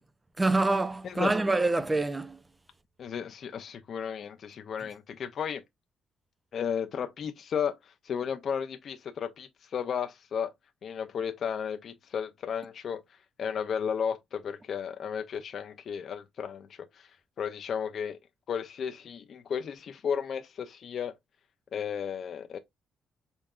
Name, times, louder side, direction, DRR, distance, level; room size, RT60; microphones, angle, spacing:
voice 1, 0.4-2.4, right 2 dB, 20° right, 0.6 m, -26 dB
voice 2, 3.0-5.6 6.5-10.5 10.8-13.0 13.4-17.1 17.4-18.2 18.5-21.1 21.7-22.6, left 7 dB, 60° left, 0.5 m, -34 dB
5.3 x 3.5 x 2.4 m
cardioid pair, 90°, 0 cm